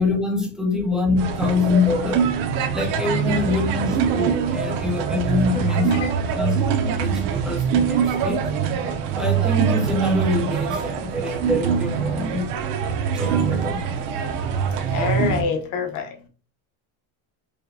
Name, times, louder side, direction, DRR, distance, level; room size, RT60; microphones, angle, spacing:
voice 1, 0.0-2.2 2.7-6.1 6.3-6.6 7.0-8.4 9.1-12.5 13.1-13.8, left 3 dB, ahead, 0.4 m, -24 dB
sound 1, 1.2-15.4, right 7 dB, 55° right, 0.7 m, -23 dB
voice 2, 2.8-3.3 4.5-7.5 14.9-16.2, left 6 dB, 45° left, 0.9 m, -31 dB
4.9 x 2.8 x 2.6 m
cardioid pair, 175°, 42 cm